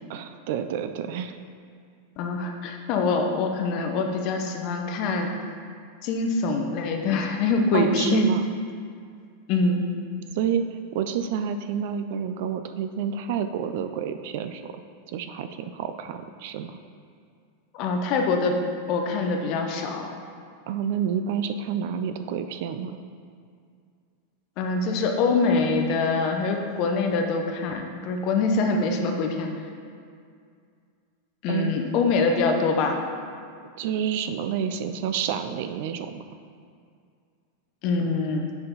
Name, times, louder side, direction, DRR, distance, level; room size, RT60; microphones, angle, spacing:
voice 1, 0.1-1.3 7.7-8.4 10.4-10.7 10.9-14.7 15.1-15.5 15.7-16.8 20.7-23.0 31.5-31.7 33.8-36.2, right 8 dB, 55° right, 8 dB, 0.4 m, -29 dB
voice 2, 2.2-5.3 6.0-8.3 9.5-9.9 17.7-18.6 18.9-20.1 24.6-29.5 31.4-33.1 37.8-38.5, left 3 dB, 40° left, 4 dB, 0.7 m, -24 dB
6.7 x 5.8 x 3.9 m, 2.3 s
supercardioid pair, 160°, 0 cm